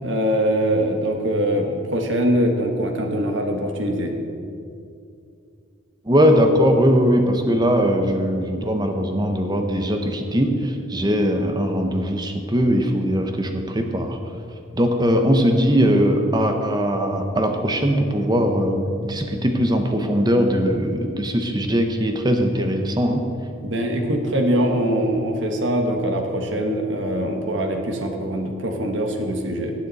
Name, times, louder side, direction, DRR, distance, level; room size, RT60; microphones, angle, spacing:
voice 1, 0.0-4.1 23.6-29.7, equal, 60° right, 3 dB, 1.3 m, -23 dB
voice 2, 6.1-14.2 14.7-23.2, equal, 20° right, 5 dB, 0.8 m, -20 dB
18.0 x 7.4 x 4.1 m, 2.5 s
head